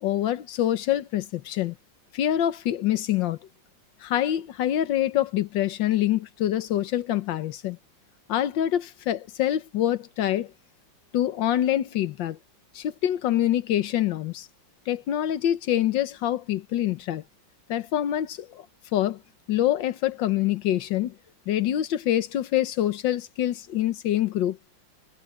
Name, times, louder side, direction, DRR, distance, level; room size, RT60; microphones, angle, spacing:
voice 1, 0.0-1.8 2.1-3.4 4.0-7.8 8.3-10.5 11.1-12.4 12.8-14.5 14.9-17.2 17.7-18.7 18.9-19.2 19.5-21.2 21.5-24.6, left 12 dB, 75° left, 1.7 m, -25 dB
omnidirectional pair, 2.0 m